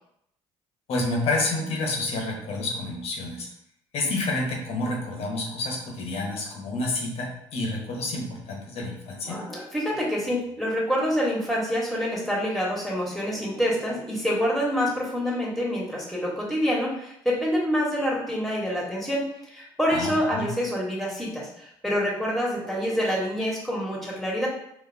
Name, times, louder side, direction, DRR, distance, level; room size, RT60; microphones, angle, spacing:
voice 1, 0.9-3.5 3.9-9.4 19.9-20.5, left 2 dB, 70° left, 0 dB, 1.1 m, -29 dB
voice 2, 9.2-24.5, equal, ahead, -4 dB, 1.5 m, -27 dB
4.1 x 2.6 x 2.7 m, 0.77 s
supercardioid pair, 80°, 11 cm